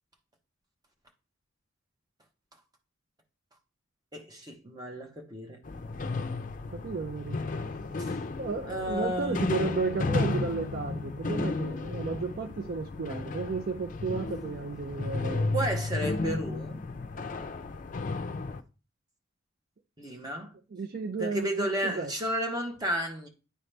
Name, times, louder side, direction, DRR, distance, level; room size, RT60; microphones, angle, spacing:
voice 1, 4.1-5.6 8.0-8.1 8.7-9.4 15.5-16.8 20.0-20.5 21.2-23.3, right 1 dB, 20° right, 1.0 m, -32 dB
sound 1, 5.6-18.6, left 3 dB, 40° left, 0.5 m, -33 dB
voice 2, 6.7-7.4 8.4-15.5 20.7-22.1, right 4 dB, 45° right, 0.4 m, -33 dB
10.0 x 3.9 x 3.3 m
head